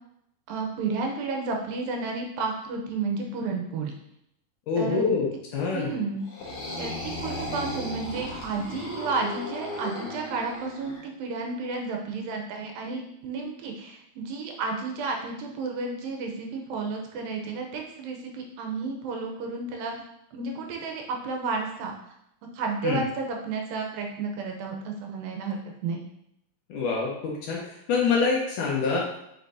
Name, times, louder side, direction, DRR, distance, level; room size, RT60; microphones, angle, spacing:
voice 1, 0.5-3.9 4.8-5.0 5.7-6.3 6.8-20.0 20.3-21.9 22.5-26.0, right 4 dB, 75° right, 1 dB, 2.4 m, -32 dB
voice 2, 4.7-5.9 22.8-23.0 26.7-29.1, left 5 dB, 70° left, -2 dB, 2.2 m, -26 dB
sound 1, 6.2-11.0, left 1 dB, 50° left, 1.8 m, -35 dB
8.1 x 5.1 x 2.7 m, 0.79 s
omnidirectional pair, 4.3 m